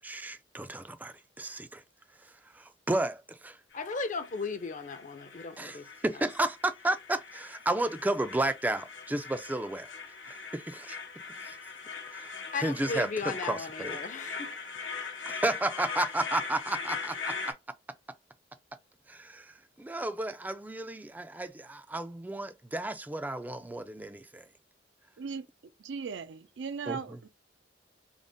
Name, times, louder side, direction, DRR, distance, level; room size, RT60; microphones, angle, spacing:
voice 1, 0.0-1.8 2.2-3.6 5.6-11.0 11.4-11.6 12.1-14.0 15.3-17.5 19.1-24.5 26.9-27.2, right 2 dB, 10° right, 0.3 m, -33 dB
sound 1, 3.7-17.5, left 5 dB, 90° left, 0.9 m, -41 dB
voice 2, 3.7-5.9 12.5-14.6, left 4 dB, 45° left, 0.6 m, -36 dB
voice 3, 25.8-27.3, right 5 dB, 80° right, 0.5 m, -38 dB
3.8 x 2.0 x 3.5 m
head